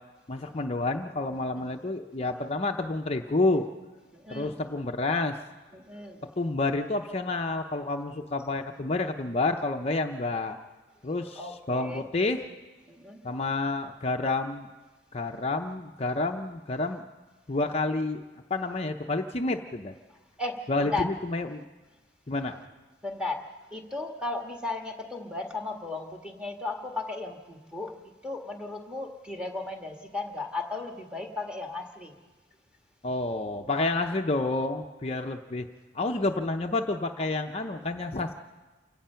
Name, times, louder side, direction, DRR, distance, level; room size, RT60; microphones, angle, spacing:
voice 1, 0.3-3.7 4.3-5.4 6.4-10.6 11.0-12.4 13.2-14.7 15.1-17.0 17.5-18.2 18.5-19.9 20.7-21.6 22.3-22.6 33.0-35.7 35.9-38.3, left 2 dB, 35° left, 4 dB, 0.7 m, -29 dB
voice 2, 4.1-4.6 5.7-6.2 11.3-12.0 12.9-13.2 20.4-21.0 23.0-28.0 28.2-32.1, left 3 dB, 5° right, 2 dB, 1.7 m, -35 dB
28.5 x 16.5 x 5.7 m, 1.3 s
head